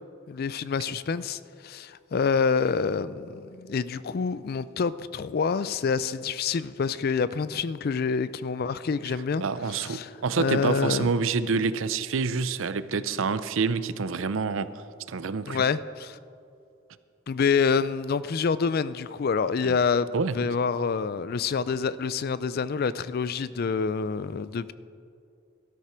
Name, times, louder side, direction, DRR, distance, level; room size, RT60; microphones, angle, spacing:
voice 1, 0.3-9.4 9.7-10.1 10.4-11.1 15.5-16.2 17.3-24.7, left 5 dB, 45° left, 16 dB, 0.4 m, -27 dB
voice 2, 9.4-14.7 15.1-15.6 19.6-19.8 20.1-20.5, right 5 dB, 70° right, 14 dB, 0.5 m, -27 dB
17.5 x 13.0 x 4.4 m, 2.5 s
head